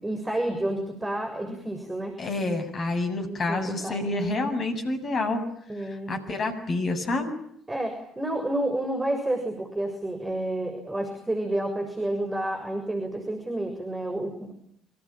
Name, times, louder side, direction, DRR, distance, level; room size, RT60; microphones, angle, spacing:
voice 1, 0.0-2.2 3.5-4.1 5.7-6.2 7.7-14.5, right 1 dB, 15° right, 4 dB, 7.0 m, -30 dB
voice 2, 2.2-5.4 5.8-7.3, left 2 dB, 40° left, 7 dB, 7.8 m, -28 dB
28.0 x 26.5 x 7.4 m, 0.72 s
figure-of-eight pair, 50°, 0 cm